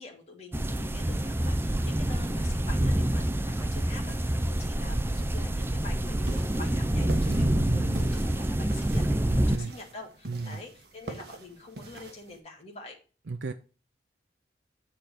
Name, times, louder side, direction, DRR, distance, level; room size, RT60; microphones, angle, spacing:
voice 1, 0.0-12.9, left 2 dB, 35° left, -1 dB, 2.1 m, -46 dB
sound 1, 0.5-9.6, right 1 dB, 15° right, 0.4 m, -27 dB
sound 2, 6.0-12.4, right 2 dB, 60° right, 1.4 m, -45 dB
voice 2, 7.3-8.1 9.3-9.7 10.3-10.6 13.3-13.5, right 3 dB, 85° right, 7 dB, 0.6 m, -34 dB
8.5 x 4.3 x 6.5 m, 0.36 s
head